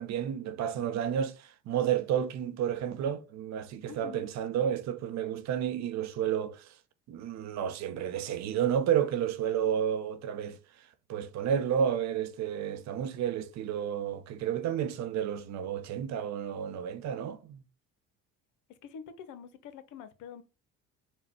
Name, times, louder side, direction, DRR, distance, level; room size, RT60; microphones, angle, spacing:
voice 1, 0.0-6.7 7.1-10.6 11.1-17.6, right 9 dB, 60° right, 0.7 m, -31 dB
voice 2, 3.9-4.3 18.8-20.4, left 7 dB, 65° left, 0.8 m, -46 dB
4.3 x 2.2 x 4.4 m
supercardioid pair, 85°, 32 cm